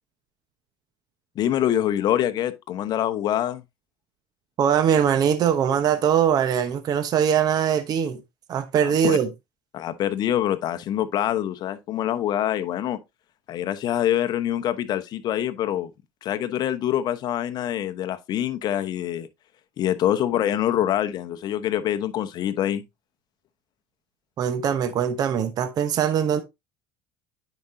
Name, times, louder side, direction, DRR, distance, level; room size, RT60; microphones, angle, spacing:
voice 1, 1.4-3.6 8.8-9.2 9.7-13.0 13.5-15.9 16.2-19.3 19.8-22.8, left 11 dB, 50° left, 0.9 m, -25 dB
voice 2, 4.6-8.2 8.5-9.3 24.4-26.4, right 8 dB, 45° right, 0.9 m, -22 dB
9.4 x 5.1 x 2.6 m
supercardioid pair, 110°, 9 cm